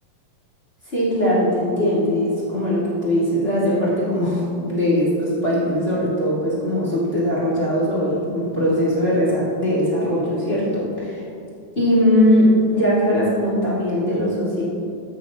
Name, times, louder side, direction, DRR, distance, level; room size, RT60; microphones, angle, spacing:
voice 1, 0.8-11.2 11.7-14.6, equal, 25° left, -9 dB, 1.5 m, -20 dB
15.0 x 6.4 x 2.9 m, 2.5 s
omnidirectional pair, 4.2 m